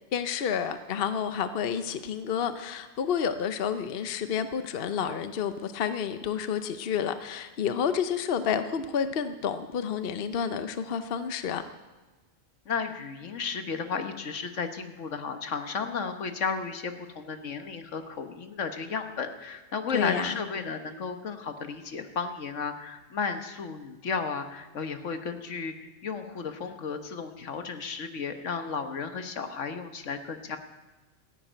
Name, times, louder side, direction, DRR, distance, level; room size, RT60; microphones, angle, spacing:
voice 1, 0.1-11.6 19.9-20.4, left 7 dB, 55° left, 10 dB, 0.9 m, -30 dB
voice 2, 12.6-30.6, left 5 dB, 80° left, 8 dB, 1.5 m, -33 dB
15.5 x 9.7 x 9.0 m, 1.2 s
omnidirectional pair, 1.3 m